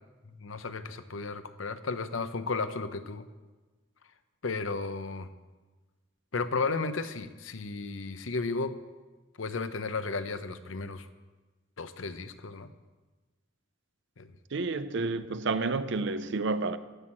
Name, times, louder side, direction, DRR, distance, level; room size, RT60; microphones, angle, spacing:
voice 1, 0.4-3.3 4.4-5.3 6.3-8.8 9.4-11.1 11.8-12.7 14.2-14.3, left 4 dB, 80° left, 0.8 m, -34 dB
voice 2, 14.5-16.8, right 3 dB, 65° right, 0.7 m, -30 dB
14.5 x 6.3 x 8.7 m
head